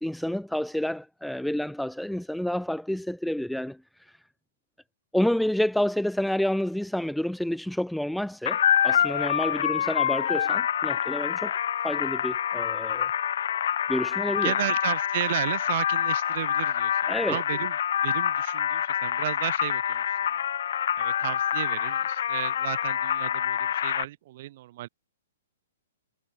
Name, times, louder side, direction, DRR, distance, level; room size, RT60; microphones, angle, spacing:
voice 1, 0.0-3.8 5.1-11.5 11.8-13.1 13.9-14.5 17.1-17.4, left 1 dB, ahead, 0.6 m, -29 dB
sound 1, 8.5-24.0, left 9 dB, 65° left, 0.5 m, -26 dB
voice 2, 14.4-17.7 18.0-20.4 21.0-24.9, right 15 dB, 40° right, 5.0 m, -33 dB
hypercardioid pair, 160°, 0 cm